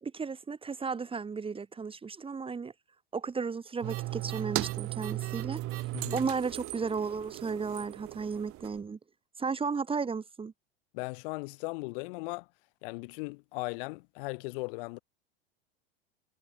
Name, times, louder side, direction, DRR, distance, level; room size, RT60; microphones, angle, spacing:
voice 1, 0.0-2.7 3.1-5.6 6.1-9.0 9.4-10.5, right 5 dB, 20° right, 2.1 m, -34 dB
sound 1, 3.8-8.8, right 17 dB, 45° right, 6.4 m, -37 dB
voice 2, 5.9-6.3 10.9-12.5 12.8-15.0, left 27 dB, 60° left, 5.1 m, -38 dB
hypercardioid pair, 95°, 30 cm